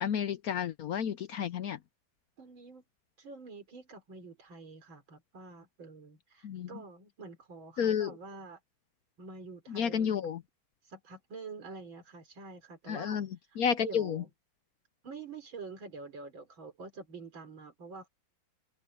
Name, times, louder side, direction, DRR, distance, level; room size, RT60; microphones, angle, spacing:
voice 1, 0.0-1.8 6.4-6.8 7.8-8.1 9.7-10.4 12.9-13.3 13.6-14.2, left 8 dB, 65° left, 0.9 m, -31 dB
voice 2, 2.4-2.8 3.2-8.6 9.2-10.1 10.9-13.2 13.8-14.3 15.0-18.1, right 4 dB, 75° right, 4.5 m, -47 dB
omnidirectional pair, 2.2 m